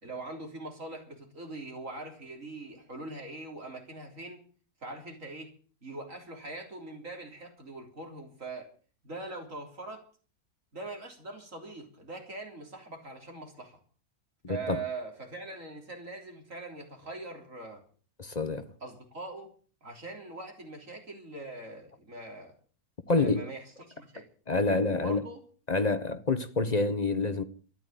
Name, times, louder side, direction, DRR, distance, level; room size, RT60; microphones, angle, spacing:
voice 1, 0.0-4.4 4.8-5.5 5.8-8.7 9.0-10.0 10.7-13.8 14.5-17.8 18.8-19.5 19.8-22.5 23.1-23.6 23.9-24.2 24.9-25.4, right 2 dB, 55° right, 3.9 m, -42 dB
voice 2, 14.5-14.8 18.2-18.7 23.1-23.5 24.5-25.2 25.7-27.4, left 3 dB, 30° left, 0.9 m, -27 dB
13.5 x 10.0 x 9.2 m
omnidirectional pair, 1.6 m